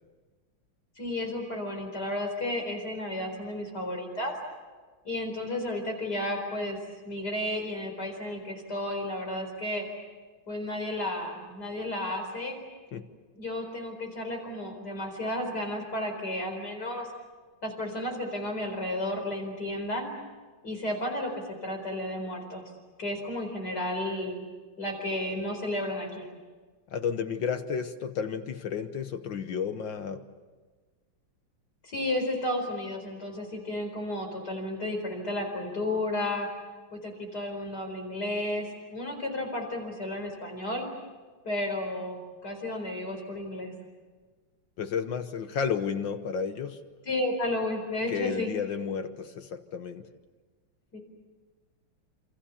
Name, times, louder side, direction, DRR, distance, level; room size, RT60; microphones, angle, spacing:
voice 1, 1.0-4.3 5.0-6.8 7.0-9.8 10.5-12.6 13.3-17.1 17.6-20.1 20.6-22.6 23.0-24.4 24.8-26.3 31.8-36.5 36.9-40.8 41.4-43.7 47.1-48.5 50.9-51.0, left 1 dB, 50° left, 3 dB, 4.9 m, -32 dB
voice 2, 26.9-30.3 44.8-46.8 48.1-50.0, left 6 dB, 65° left, 9 dB, 1.7 m, -32 dB
28.5 x 28.0 x 7.1 m, 1.4 s
omnidirectional pair, 2.3 m